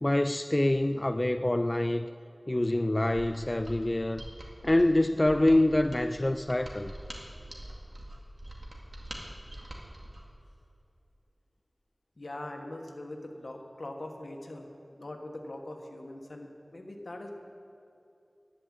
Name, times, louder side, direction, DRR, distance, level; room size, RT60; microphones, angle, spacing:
voice 1, 0.0-2.1 2.5-4.2 4.6-6.9, left 1 dB, 35° left, 10 dB, 0.3 m, -26 dB
Mechanisms, 3.1-10.3, right 1 dB, 70° right, 2.0 m, -44 dB
voice 2, 12.2-14.7 15.0-17.3, left 1 dB, 80° left, 3 dB, 1.4 m, -42 dB
11.0 x 9.7 x 7.7 m, 2.7 s
wide cardioid pair, 50°, 0 cm